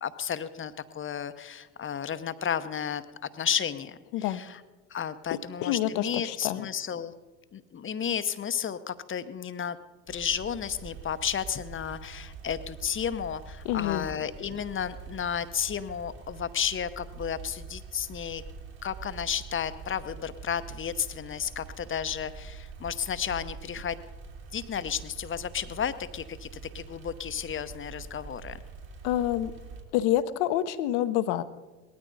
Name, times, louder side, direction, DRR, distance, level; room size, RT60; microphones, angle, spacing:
voice 1, 0.0-3.0 3.3-4.6 4.9-7.1 7.5-9.8 10.1-18.4 18.8-24.0 24.5-28.6, left 8 dB, 30° left, 12 dB, 0.8 m, -32 dB
voice 2, 5.3-6.7 13.6-14.1 29.0-29.5 29.9-31.4, left 12 dB, 70° left, 12 dB, 0.9 m, -27 dB
sound 1, 10.1-29.8, right 5 dB, 55° right, 3.2 m, -45 dB
18.5 x 13.0 x 4.0 m, 1.2 s
hypercardioid pair, 75°, 43 cm